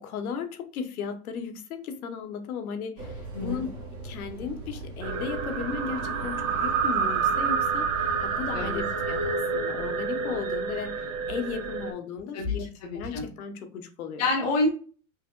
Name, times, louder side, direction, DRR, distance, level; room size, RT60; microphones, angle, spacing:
voice 1, 0.0-3.7 4.0-12.7 12.9-14.3, left 6 dB, 90° left, 1.1 m, -36 dB
sound 1, 3.0-9.3, right 2 dB, 20° right, 1.5 m, -40 dB
sound 2, 5.0-11.9, right 5 dB, 65° right, 1.1 m, -28 dB
voice 2, 12.8-13.2 14.2-14.7, left 2 dB, 30° left, 0.7 m, -27 dB
5.2 x 2.8 x 2.2 m
supercardioid pair, 180°, 42 cm